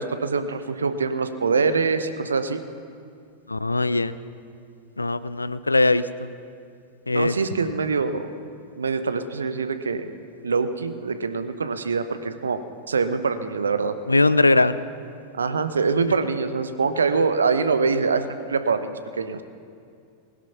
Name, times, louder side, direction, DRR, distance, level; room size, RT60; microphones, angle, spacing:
voice 1, 0.0-2.6 7.1-8.3 8.8-10.1 10.4-12.6 12.9-14.0 15.3-19.4, right 4 dB, 70° right, 10 dB, 1.0 m, -24 dB
voice 2, 3.5-4.1 5.0-6.3 7.1-7.4 14.1-14.8, left 2 dB, 80° left, 15 dB, 0.5 m, -20 dB
20.0 x 11.5 x 5.9 m, 2.4 s
figure-of-eight pair, 90°, 0 cm